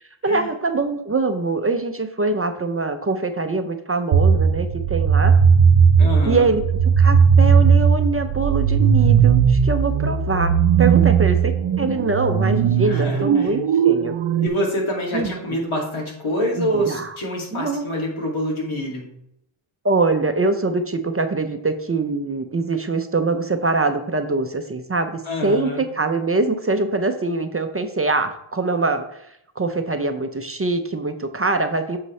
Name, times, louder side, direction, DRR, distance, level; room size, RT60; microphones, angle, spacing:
voice 1, 0.0-5.3 6.2-6.6 7.0-14.2 15.1-15.6 16.5-17.2 17.5-17.9 19.8-29.2 29.6-32.0, right 3 dB, 30° right, 7 dB, 0.6 m, -23 dB
sound 1, 4.1-14.5, right 6 dB, 70° right, 0.8 m, -17 dB
voice 2, 6.0-6.5 12.8-13.5 14.4-19.1 25.3-25.8, equal, 70° left, -1 dB, 2.5 m, -26 dB
8.2 x 6.4 x 3.2 m, 0.77 s
wide cardioid pair, 110°, 49 cm